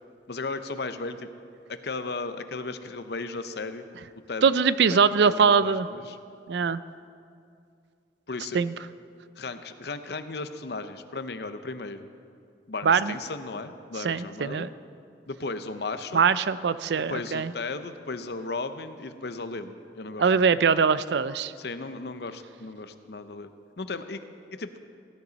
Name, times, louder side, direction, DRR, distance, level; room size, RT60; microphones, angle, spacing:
voice 1, 0.3-1.3 1.7-3.8 4.3-4.5 4.8-5.0 5.2-6.2 8.3-8.6 9.4-12.1 12.7-14.7 15.3-16.3 17.0-20.5 21.6-23.5 23.8-24.2 24.5-24.7, left 3 dB, 60° left, 10 dB, 0.7 m, -35 dB
voice 2, 4.4-5.9 6.5-6.8 8.5-8.7 12.8-13.1 14.0-14.7 16.1-17.5 20.2-21.5, right 5 dB, 65° right, 15 dB, 0.4 m, -22 dB
16.0 x 16.0 x 4.0 m, 2.4 s
head